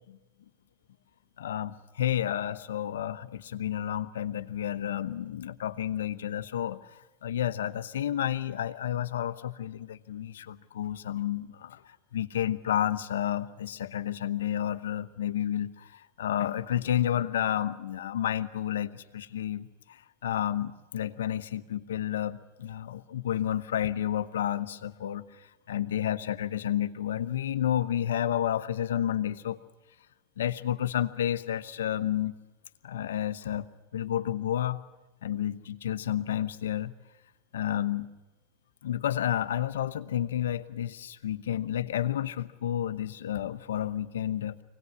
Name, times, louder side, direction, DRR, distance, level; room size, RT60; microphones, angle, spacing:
voice 1, 1.4-29.6 30.4-32.3 32.8-33.6 33.9-34.8 35.2-36.9 37.5-38.1 38.8-44.5, left 10 dB, 85° left, 11 dB, 1.0 m, -31 dB
24.5 x 18.5 x 9.6 m, 1.0 s
hypercardioid pair, 105°, 0 cm